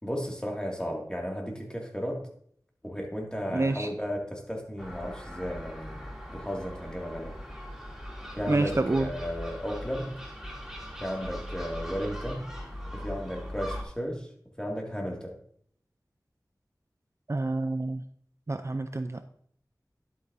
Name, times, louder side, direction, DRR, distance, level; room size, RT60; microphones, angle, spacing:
voice 1, 0.0-2.3 2.8-6.0 6.3-7.4 8.4-10.2 11.0-12.5 12.9-14.3 14.6-15.3, equal, 10° left, 0 dB, 2.4 m, -34 dB
voice 2, 3.5-3.9 8.5-9.1 17.3-18.0 18.5-19.3, right 2 dB, 40° right, 8 dB, 0.5 m, -28 dB
Gull seagull, 4.8-13.8, equal, 5° right, 2.9 m, -40 dB
11.5 x 8.5 x 2.7 m, 0.64 s
wide cardioid pair, 50°, 7 cm